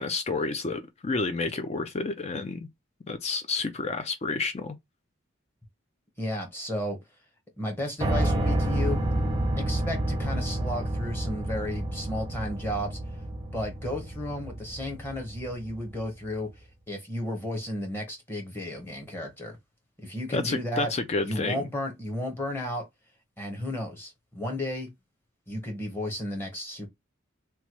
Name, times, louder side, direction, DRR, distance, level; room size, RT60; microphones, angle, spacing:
voice 1, 0.0-2.7 3.1-4.8 20.3-21.6, left 3 dB, 30° left, 0.4 m, -30 dB
voice 2, 6.2-7.0 7.6-9.0 9.6-13.0 13.5-19.6 20.0-20.9 21.2-22.8 23.4-24.9 25.5-26.9, left 1 dB, 10° left, 0.9 m, -33 dB
Piano, 8.0-16.0, right 1 dB, 20° right, 0.6 m, -29 dB
3.0 x 2.2 x 2.9 m
head